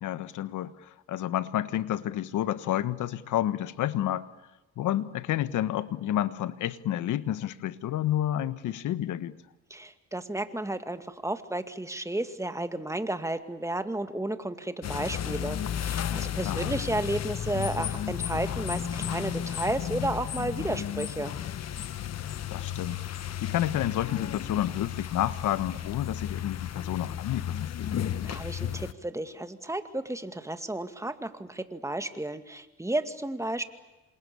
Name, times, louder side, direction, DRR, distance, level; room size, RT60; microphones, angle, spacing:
voice 1, 0.0-4.3 4.8-9.4 16.4-16.8 22.5-28.0, left 12 dB, 80° left, 14 dB, 1.4 m, -30 dB
voice 2, 9.7-21.3 28.2-33.6, right 1 dB, 10° right, 9 dB, 2.3 m, -32 dB
sound 1, 14.8-28.9, left 9 dB, 60° left, 1.4 m, -33 dB
28.0 x 27.0 x 7.0 m, 1.1 s
cardioid pair, 90°, 30 cm